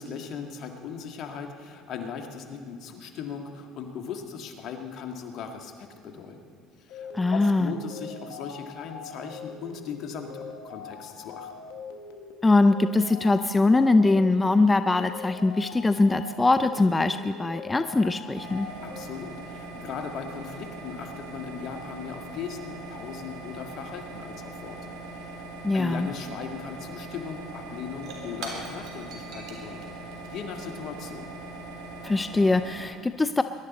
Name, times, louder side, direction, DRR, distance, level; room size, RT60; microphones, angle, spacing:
voice 1, 0.0-6.4 6.8-11.5 18.8-25.4 25.7-30.0 30.3-31.4, left 6 dB, 60° left, 4 dB, 1.8 m, -38 dB
sound 1, 6.9-19.0, left 5 dB, 75° left, 1.5 m, -42 dB
voice 2, 7.1-7.7 12.4-18.7 25.6-26.1 32.0-33.4, left 2 dB, 15° left, 10 dB, 0.5 m, -22 dB
sound 2, 18.3-32.9, right 2 dB, 80° right, 2.9 m, -41 dB
Shatter / Crushing, 27.9-32.3, right 3 dB, 60° right, 3.3 m, -45 dB
22.0 x 11.5 x 4.2 m, 2.3 s
supercardioid pair, 85°, 0 cm